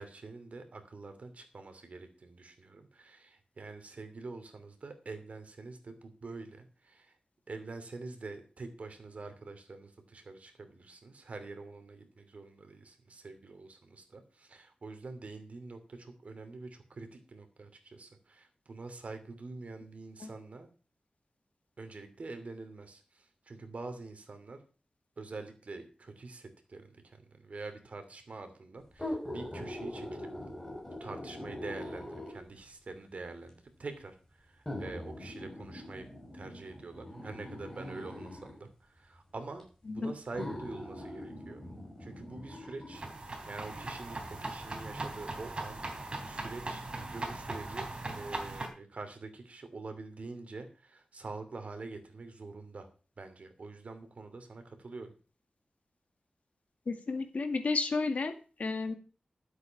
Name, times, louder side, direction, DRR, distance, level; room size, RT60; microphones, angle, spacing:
voice 1, 0.0-7.1 7.5-20.7 21.8-24.6 25.2-30.3 31.0-36.1 36.3-41.6 42.0-46.8 47.1-47.9 48.1-52.9 53.2-55.1, right 3 dB, 60° right, 7 dB, 2.8 m, -46 dB
sound 1, 28.9-32.6 33.5-33.6 34.7-38.6 39.6-39.7 40.3-43.0 43.4-43.5, left 1 dB, 10° left, 5.7 m, -42 dB
sound 2, 42.9-48.7, right 2 dB, 40° right, 3.6 m, -39 dB
voice 2, 56.9-58.3 58.6-58.9, left 3 dB, 65° left, 7 dB, 2.1 m, -32 dB
12.5 x 8.2 x 5.9 m, 0.37 s
wide cardioid pair, 105°, 3 cm